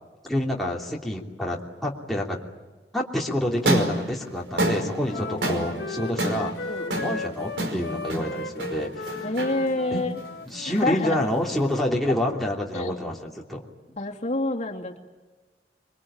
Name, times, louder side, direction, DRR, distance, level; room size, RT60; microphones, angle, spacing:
voice 1, 0.3-2.4 2.9-9.2 9.9-10.0 10.5-13.7, left 1 dB, ahead, -3 dB, 3.0 m, -28 dB
sound 1, 3.5-11.8, right 1 dB, 80° right, 5.2 m, -30 dB
Wind instrument woodwind instrument, 4.6-11.0, left 3 dB, 70° left, 1.5 m, -36 dB
voice 2, 5.1-6.1 6.7-7.2 9.2-10.2 10.7-11.2 12.7-13.0 14.0-15.0, left 2 dB, 40° left, -1 dB, 2.7 m, -29 dB
26.5 x 23.5 x 8.9 m, 1.3 s
head